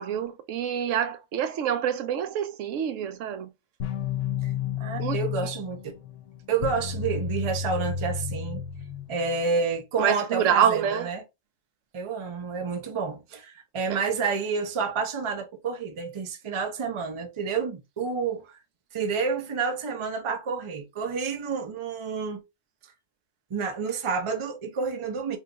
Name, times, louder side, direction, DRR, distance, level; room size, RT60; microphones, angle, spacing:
voice 1, 0.0-3.5 5.0-5.2 10.0-11.1, right 9 dB, 85° right, 0.9 m, -26 dB
sound 1, 3.8-9.4, left 7 dB, 80° left, 1.0 m, -31 dB
voice 2, 4.8-6.0 6.5-8.6 9.1-11.2 11.9-18.6 18.9-22.4 23.5-25.4, right 5 dB, 35° right, 0.5 m, -29 dB
2.7 x 2.3 x 3.9 m
omnidirectional pair, 1.3 m